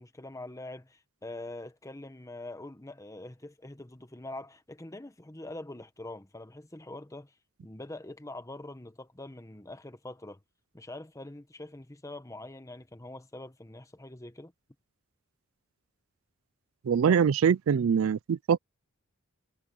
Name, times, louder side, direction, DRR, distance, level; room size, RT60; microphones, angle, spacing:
voice 1, 0.0-7.3 7.6-10.4 10.7-14.5 17.1-17.2, left 2 dB, 15° left, 1.1 m, -44 dB
voice 2, 16.8-18.6, right 7 dB, 75° right, 0.4 m, -23 dB
head